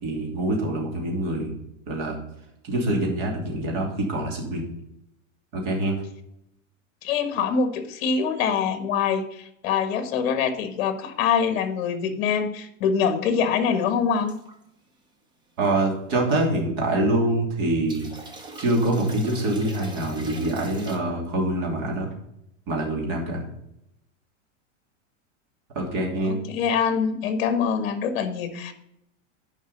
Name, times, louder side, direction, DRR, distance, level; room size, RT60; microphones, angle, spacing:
voice 1, 0.0-1.5 1.9-2.2 2.7-4.6 5.5-6.0 15.6-18.1 18.6-22.1 22.7-23.4 25.7-26.4, right 1 dB, 40° right, 0 dB, 2.9 m, -25 dB
voice 2, 7.0-14.3 26.2-28.7, left 6 dB, 50° left, 8 dB, 1.5 m, -24 dB
sound 1, 14.3-14.5 17.9-21.0, right 1 dB, 10° right, 0.8 m, -36 dB
10.0 x 5.4 x 5.5 m, 0.79 s
supercardioid pair, 165°, 39 cm